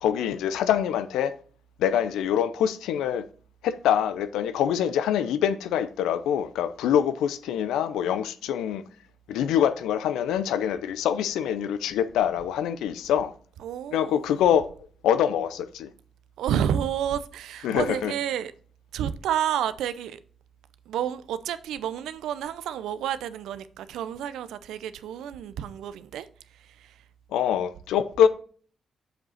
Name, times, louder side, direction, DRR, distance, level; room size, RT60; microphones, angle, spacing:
voice 1, 0.0-1.4 1.8-3.2 3.6-8.8 9.3-13.3 13.9-14.7 15.0-15.9 17.6-18.1 27.3-28.3, left 9 dB, 85° left, 0.6 m, -25 dB
voice 2, 13.6-14.2 16.4-18.5 18.9-20.2 20.9-26.3 26.5-27.0, right 10 dB, 85° right, 0.5 m, -30 dB
7.5 x 5.5 x 4.1 m
supercardioid pair, 50°, 0 cm